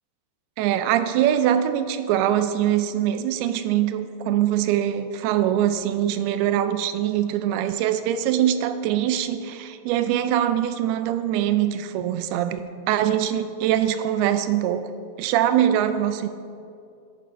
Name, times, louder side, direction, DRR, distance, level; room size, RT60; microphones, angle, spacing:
voice 1, 0.6-14.9 15.2-16.3, right 11 dB, 85° right, 11 dB, 2.4 m, -23 dB
11.0 x 9.5 x 4.5 m, 2.4 s
omnidirectional pair, 4.7 m